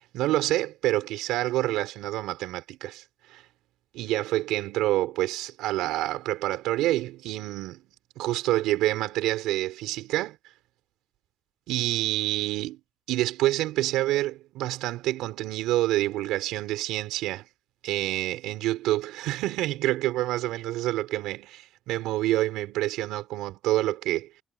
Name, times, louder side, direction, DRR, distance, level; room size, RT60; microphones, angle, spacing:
voice 1, 0.0-3.0 3.3-3.4 3.9-7.8 8.2-10.4 11.7-12.8 13.1-17.5 17.8-24.3, right 16 dB, 90° right, 5.6 m, -27 dB
supercardioid pair, 70°, 0 cm